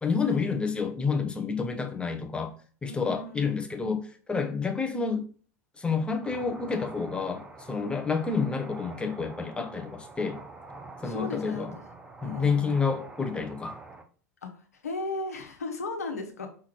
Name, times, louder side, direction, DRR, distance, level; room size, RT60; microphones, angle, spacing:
voice 1, 0.0-2.5 2.8-5.3 5.8-10.4 11.0-11.8 12.2-13.8, left 5 dB, 10° left, 1.1 m, -29 dB
voice 2, 2.9-4.0 11.0-11.7 12.2-12.8 14.4-14.5 14.8-16.5, left 3 dB, 75° left, 1.3 m, -36 dB
sound 1, 6.2-14.0, right 3 dB, 15° right, 0.9 m, -45 dB
6.1 x 3.7 x 4.6 m
figure-of-eight pair, 80°, 8 cm